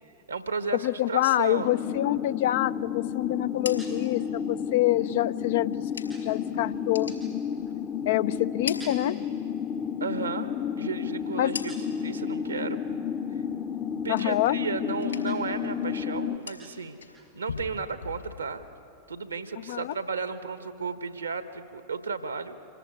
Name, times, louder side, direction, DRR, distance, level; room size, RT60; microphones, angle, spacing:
voice 1, 0.3-1.7 10.0-10.5 10.8-11.7 12.0-12.8 14.0-17.0 17.3-18.6 19.1-22.6, right 5 dB, 75° right, 11 dB, 1.3 m, -33 dB
voice 2, 0.8-5.8 6.2-7.1 8.1-9.2 11.4-11.5 14.1-14.6 19.7-20.0, left 15 dB, 55° left, 15 dB, 0.5 m, -26 dB
sound 1, 1.5-16.4, left 8 dB, 25° left, 0.8 m, -32 dB
sound 2, 3.3-6.4 6.8-8.1 8.4-9.7 10.0-12.2 12.6-13.0 13.4-14.7 14.9-15.6 15.8-18.7, left 5 dB, 80° left, 5.6 m, -42 dB
26.0 x 17.5 x 9.8 m, 2.8 s
figure-of-eight pair, 90°, 0 cm